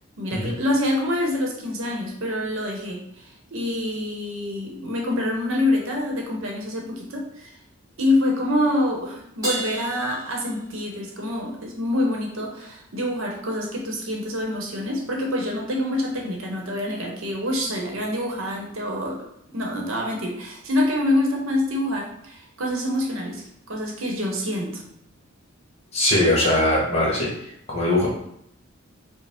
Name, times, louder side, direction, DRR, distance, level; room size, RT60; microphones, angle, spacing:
voice 1, 0.2-7.6 8.0-19.2 19.5-24.8, left 1 dB, 70° right, 0 dB, 0.8 m, -26 dB
Crash cymbal, 9.4-11.2, right 2 dB, 15° right, 1.1 m, -32 dB
voice 2, 25.9-27.3 27.7-28.1, left 1 dB, 30° left, -5 dB, 1.1 m, -20 dB
4.8 x 2.0 x 3.5 m, 0.74 s
head